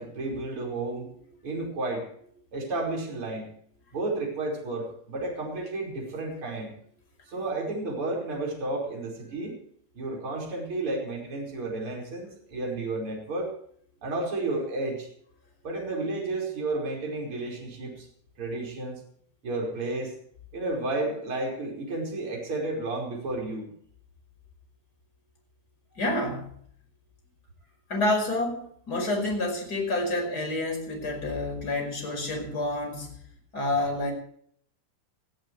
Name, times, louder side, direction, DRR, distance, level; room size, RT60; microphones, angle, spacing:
voice 1, 0.0-2.1 2.5-3.5 3.9-6.7 7.3-9.6 9.9-13.5 14.0-15.1 15.6-18.1 18.4-19.0 19.4-20.1 20.5-23.7, right 2 dB, 35° right, -1 dB, 5.5 m, -32 dB
voice 2, 26.0-26.5 27.9-33.1 33.5-34.1, left 2 dB, 25° left, 3 dB, 5.4 m, -28 dB
21.0 x 14.0 x 3.2 m, 0.62 s
omnidirectional pair, 4.4 m